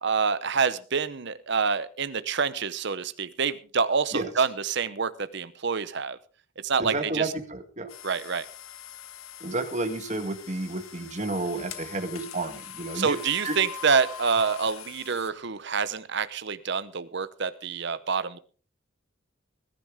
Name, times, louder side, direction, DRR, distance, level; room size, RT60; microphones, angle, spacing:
voice 1, 0.0-6.2 6.6-7.3 8.0-8.5 12.9-18.4, right 5 dB, 55° right, 14 dB, 0.9 m, -27 dB
voice 2, 6.8-7.9 9.4-13.2 13.4-13.5, right 2 dB, 35° right, 7 dB, 1.8 m, -31 dB
sound 1, 7.9-15.3, left 6 dB, 80° left, 1.3 m, -42 dB
20.5 x 10.5 x 3.6 m, 0.37 s
head